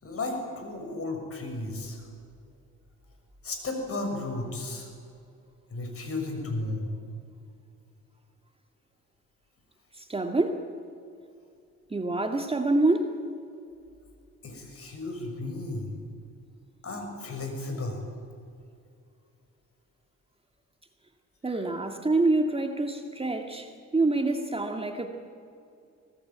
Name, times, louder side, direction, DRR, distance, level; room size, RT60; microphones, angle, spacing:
voice 1, 0.0-2.0 3.4-4.9 5.7-6.9 14.4-15.9 16.8-18.0, left 2 dB, 50° left, 4 dB, 6.8 m, -34 dB
voice 2, 9.9-10.7 11.9-13.2 21.4-25.1, right 2 dB, 20° right, 4 dB, 2.1 m, -26 dB
25.0 x 18.5 x 8.9 m, 2.4 s
cardioid pair, 90°, 30 cm